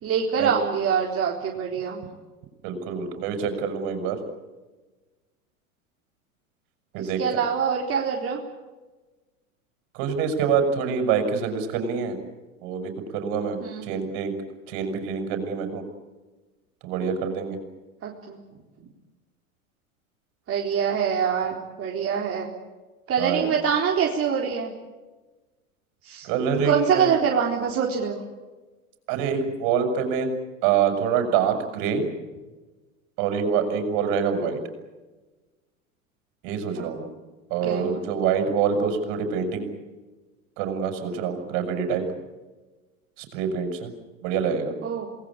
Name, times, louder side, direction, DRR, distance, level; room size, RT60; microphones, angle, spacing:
voice 1, 0.0-2.0 7.0-8.4 13.6-13.8 18.0-18.4 20.5-22.5 23.1-24.7 26.0-26.3 26.6-28.2 36.8-36.9 37.6-37.9 44.8-45.1, right 7 dB, 30° right, -1 dB, 4.1 m, -25 dB
voice 2, 2.6-4.2 6.9-7.4 9.9-12.2 12.6-14.3 14.7-15.8 16.8-17.6 23.2-23.5 26.2-27.2 29.1-30.3 30.6-32.1 33.2-34.6 36.4-37.1 37.5-39.7 40.6-42.0 43.2-43.9 44.2-44.7, right 6 dB, 50° right, 7 dB, 7.2 m, -26 dB
28.0 x 20.0 x 8.7 m, 1.2 s
hypercardioid pair, 90°, 43 cm